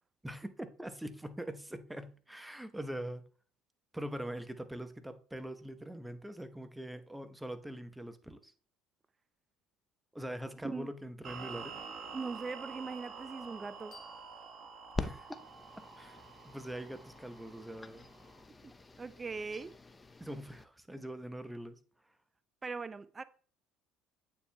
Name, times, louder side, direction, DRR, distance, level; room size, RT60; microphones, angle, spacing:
voice 1, 0.2-3.2 3.9-8.5 10.1-11.8 15.0-15.4 16.0-18.1 20.2-21.8, right 1 dB, 5° right, 0.8 m, -43 dB
sound 1, 11.2-18.4, right 5 dB, 55° right, 1.2 m, -48 dB
voice 2, 12.1-13.9 18.5-19.7 22.6-23.2, right 4 dB, 25° right, 0.4 m, -40 dB
sound 2, 13.9-16.7, left 4 dB, 50° left, 1.9 m, -63 dB
sound 3, 14.9-20.6, left 3 dB, 20° left, 0.6 m, -45 dB
8.7 x 7.0 x 2.2 m
supercardioid pair, 80°, 0 cm